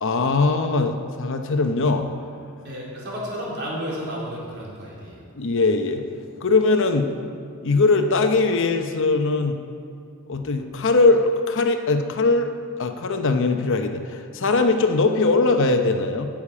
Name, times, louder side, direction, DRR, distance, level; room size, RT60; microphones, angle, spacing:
voice 1, 0.0-2.1 5.4-6.0 6.4-7.1 7.6-9.6 10.3-12.5 12.8-16.3, left 3 dB, 60° left, 6 dB, 0.8 m, -20 dB
voice 2, 2.6-5.2, equal, 50° right, -6 dB, 3.6 m, -32 dB
9.7 x 7.3 x 8.5 m, 2.3 s
head